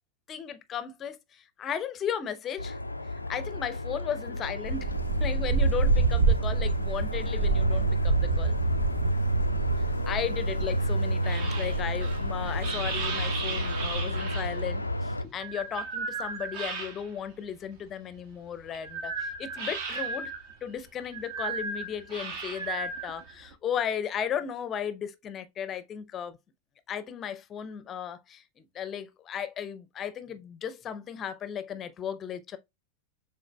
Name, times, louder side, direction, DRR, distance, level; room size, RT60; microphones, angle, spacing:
voice 1, 0.3-2.8 3.3-4.9 5.2-8.6 10.0-20.3 20.6-26.4 26.9-32.6, left 8 dB, 25° left, 0.6 m, -35 dB
sound 1, 2.6-15.2, equal, 85° left, 0.3 m, -31 dB
sound 2, 4.6-13.9, right 4 dB, 70° right, 1.0 m, -28 dB
sound 3, 10.1-17.3 17.7-23.5, right 4 dB, 50° right, 1.2 m, -36 dB
6.4 x 3.6 x 2.2 m
figure-of-eight pair, 90°, 0 cm